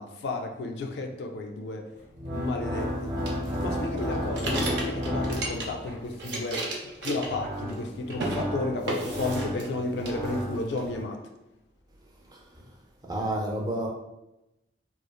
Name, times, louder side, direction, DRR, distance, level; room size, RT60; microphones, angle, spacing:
voice 1, 0.0-1.9 2.3-3.1 3.6-6.7 7.0-11.2, left 2 dB, 70° left, 0.3 m, -32 dB
sound 1, 2.0-6.1 7.0-11.0, equal, 45° right, 0.8 m, -33 dB
sound 2, 3.2-5.9 6.1-7.8 8.1-8.4 8.9-9.8 10.0-10.8, right 2 dB, 80° right, 0.5 m, -34 dB
voice 2, 12.3-12.7 13.1-13.9, right 1 dB, 20° right, 0.4 m, -30 dB
3.1 x 2.3 x 2.2 m
head